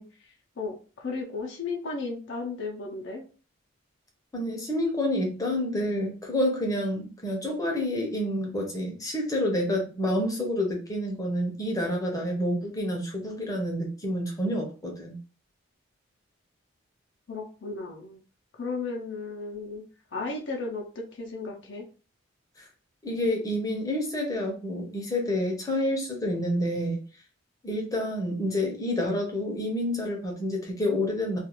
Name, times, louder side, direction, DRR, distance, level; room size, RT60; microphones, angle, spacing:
voice 1, 0.0-3.2 17.3-18.2 18.5-19.8 20.1-21.9, left 3 dB, 60° left, 0 dB, 0.6 m, -35 dB
voice 2, 4.3-15.2 23.0-27.0 27.6-31.4, left 1 dB, 15° left, 0 dB, 0.7 m, -28 dB
2.4 x 2.4 x 2.9 m, 0.36 s
head